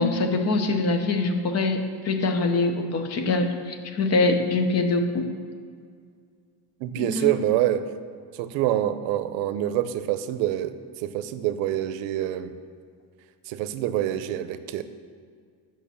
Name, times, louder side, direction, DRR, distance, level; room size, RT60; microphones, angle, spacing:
voice 1, 0.0-5.3 7.0-7.3, left 3 dB, 30° left, 6 dB, 0.8 m, -24 dB
voice 2, 6.8-7.9 8.3-12.5 13.5-14.8, right 12 dB, 70° right, 12 dB, 0.7 m, -26 dB
8.7 x 6.1 x 7.0 m, 2.1 s
cardioid pair, 175°, 48 cm